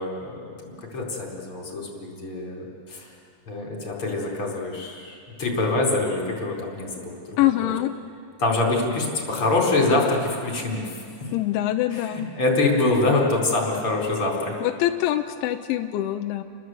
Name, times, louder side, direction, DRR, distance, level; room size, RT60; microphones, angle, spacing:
voice 1, 0.0-3.1 3.5-6.9 7.4-7.5 8.4-10.9 11.9-14.5, left 2 dB, 25° left, -2 dB, 4.7 m, -25 dB
voice 2, 7.4-7.9 11.3-12.3 14.6-16.4, left 14 dB, 80° left, 6 dB, 2.9 m, -24 dB
30.0 x 21.5 x 8.0 m, 2.3 s
omnidirectional pair, 5.9 m